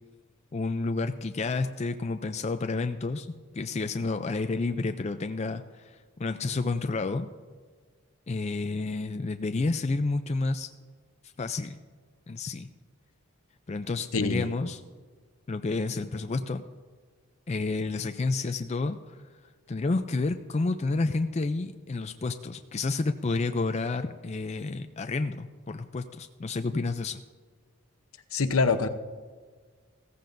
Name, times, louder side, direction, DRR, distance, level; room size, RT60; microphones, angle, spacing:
voice 1, 0.5-7.3 8.3-10.7 11.4-11.8 12.3-12.7 13.7-14.8 15.5-16.6 17.5-19.2 19.7-27.2, left 3 dB, 30° left, 8 dB, 0.4 m, -30 dB
voice 2, 14.1-14.5 28.3-28.9, left 4 dB, 70° left, 9 dB, 0.8 m, -24 dB
16.0 x 15.0 x 2.6 m, 1.5 s
head